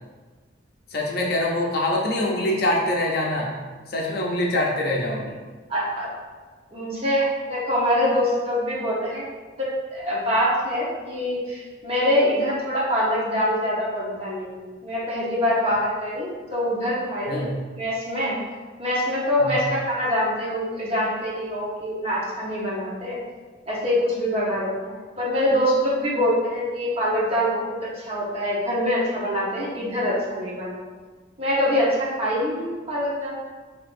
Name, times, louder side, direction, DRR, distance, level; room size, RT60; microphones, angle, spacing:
voice 1, 0.9-3.5 3.9-5.4 17.3-17.5 19.4-19.5, left 1 dB, 50° left, -2 dB, 0.6 m, -24 dB
voice 2, 5.7-6.1 6.7-9.2 9.6-17.5 17.7-18.4 18.8-23.2 23.7-30.8 31.4-33.4, equal, 30° right, -6 dB, 0.9 m, -24 dB
5.4 x 2.7 x 2.6 m, 1.4 s
head